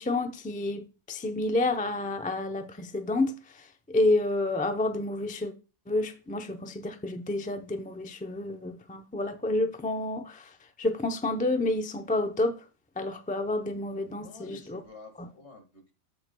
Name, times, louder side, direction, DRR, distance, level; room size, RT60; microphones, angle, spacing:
voice 1, 0.0-5.5 5.9-12.6 13.0-14.8 15.2-15.3, left 2 dB, 10° left, 0.5 m, -29 dB
voice 2, 14.2-15.9, left 3 dB, 65° left, 2.1 m, -49 dB
14.5 x 4.9 x 2.2 m
omnidirectional pair, 1.2 m